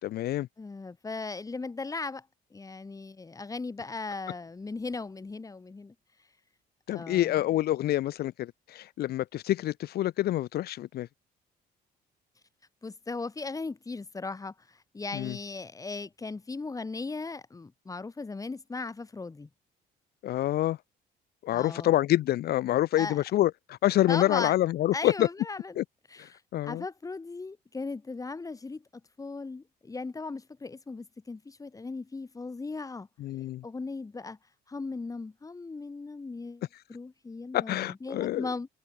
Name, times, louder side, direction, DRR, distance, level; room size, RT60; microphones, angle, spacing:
voice 1, 0.0-0.5 6.9-11.1 15.1-15.4 20.2-20.8 21.4-25.3 25.8-25.9 26.2-26.8 33.2-33.6 37.5-38.5, left 14 dB, 70° left, 2.0 m, -27 dB
voice 2, 0.6-2.3 2.5-5.9 6.9-7.4 12.8-19.5 21.5-21.9 23.0-23.2 24.1-24.6 24.9-25.8 26.1-28.8 29.2-33.1 33.6-34.4 34.7-36.6 36.9-38.7, left 3 dB, 20° left, 4.6 m, -37 dB
cardioid pair, 110°, 17 cm